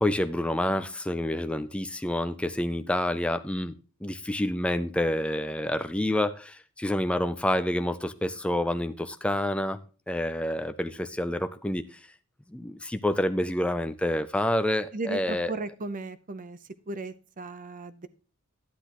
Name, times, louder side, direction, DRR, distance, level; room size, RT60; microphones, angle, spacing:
voice 1, 0.0-3.7 4.0-9.8 10.1-12.0 12.5-15.5, left 1 dB, 5° left, 0.4 m, -28 dB
voice 2, 14.9-16.6 16.9-18.1, right 3 dB, 35° right, 0.6 m, -36 dB
11.5 x 10.0 x 3.0 m
head